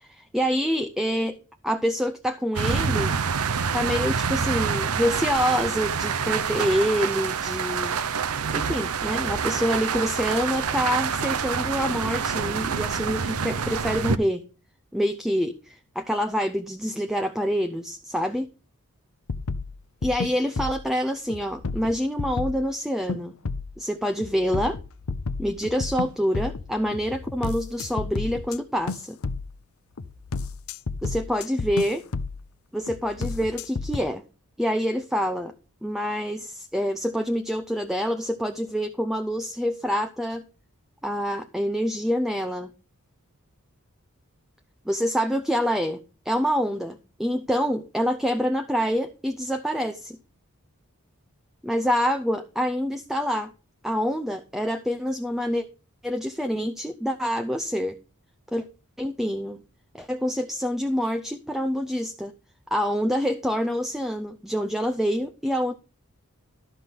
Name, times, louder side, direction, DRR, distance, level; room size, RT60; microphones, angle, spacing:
voice 1, 0.0-1.4 1.6-3.2 3.7-8.0 8.5-14.4 14.9-18.5 20.0-23.3 23.8-24.8 25.4-29.2 31.0-32.0 32.7-34.2 34.6-35.5 35.8-40.4 41.0-42.7 44.9-50.2 51.6-53.5 53.8-55.6 56.0-58.0 58.5-58.6 59.0-59.6 59.9-62.3 62.7-65.7, equal, ahead, 8 dB, 0.5 m, -26 dB
sound 1, 2.6-14.2, right 6 dB, 80° right, 0.7 m, -27 dB
sound 2, 19.3-20.9 21.3-22.7 23.1-23.8 24.2-28.6 28.9-29.6 30.0-32.5 32.9-34.0, left 3 dB, 70° left, 0.7 m, -32 dB
12.5 x 5.9 x 5.1 m, 0.34 s
head